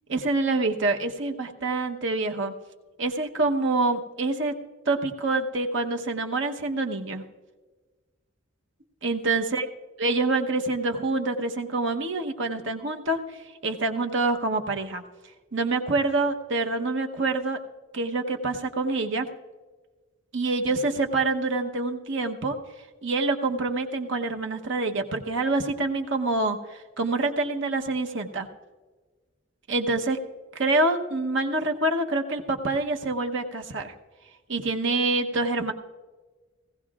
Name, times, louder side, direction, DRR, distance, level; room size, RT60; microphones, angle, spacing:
voice 1, 0.1-2.5 3.0-4.5 4.9-7.2 9.0-9.7 10.0-15.0 15.5-17.6 17.9-19.3 20.3-22.6 23.0-28.5 29.7-30.2 30.5-33.9 34.5-35.7, right 2 dB, 65° right, 4 dB, 0.9 m, -26 dB
18.0 x 15.5 x 2.4 m, 1.3 s
head